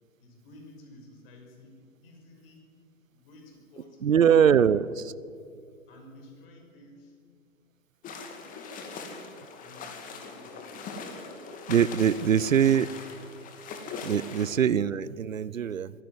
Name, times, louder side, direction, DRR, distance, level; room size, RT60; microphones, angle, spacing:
voice 1, 0.2-2.6 3.1-4.7 5.9-7.2 8.4-8.6 9.5-11.3, left 1 dB, 45° left, 3 dB, 5.7 m, -53 dB
voice 2, 4.0-4.9 11.7-12.9 14.0-15.9, right 8 dB, 75° right, 20 dB, 0.7 m, -22 dB
sound 1, 8.0-14.5, left 4 dB, 20° left, 2.3 m, -41 dB
22.0 x 15.0 x 7.8 m, 2.3 s
figure-of-eight pair, 120°, 40 cm